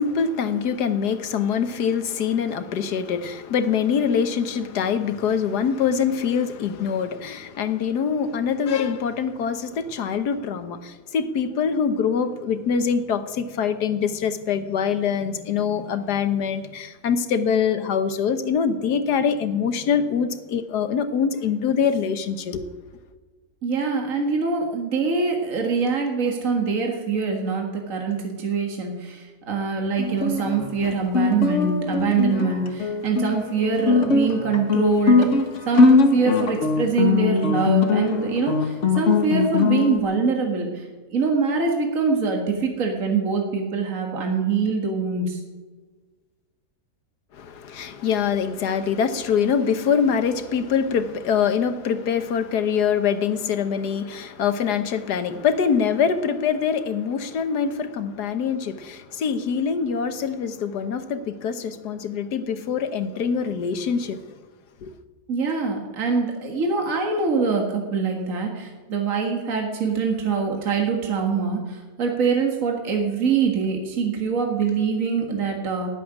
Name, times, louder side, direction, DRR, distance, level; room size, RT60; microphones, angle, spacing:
voice 1, 0.0-22.6 47.3-64.2 64.8-64.9, left 7 dB, 85° left, 10 dB, 1.6 m, -24 dB
voice 2, 23.6-35.4 35.7-40.9 41.1-45.4 65.3-75.9, right 5 dB, 55° right, 1 dB, 2.1 m, -24 dB
Guitar, 30.0-40.0, left 4 dB, 50° left, 1.6 m, -21 dB
17.5 x 7.8 x 9.7 m, 1.4 s
omnidirectional pair, 1.7 m